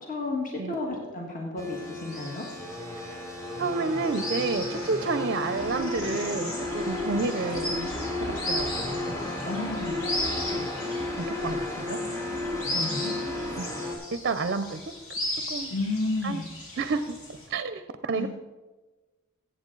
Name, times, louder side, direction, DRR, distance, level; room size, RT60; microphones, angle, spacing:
voice 1, 0.0-2.5 9.4-10.0 12.7-13.1 15.7-16.5 18.1-18.3, left 2 dB, 40° left, 0 dB, 1.6 m, -32 dB
sound 1, 1.6-13.9, left 2 dB, 15° left, 1.8 m, -33 dB
sound 2, 2.1-17.5, left 1 dB, 75° left, 2.6 m, -37 dB
voice 2, 3.6-7.9 8.3-8.7 10.5-10.7 11.2-12.0 13.6-13.7 14.1-14.8 15.5-15.7 16.2-16.4 16.8-17.1 17.5-18.3, right 3 dB, 50° right, 11 dB, 0.5 m, -30 dB
14.5 x 8.1 x 3.8 m, 1.2 s
head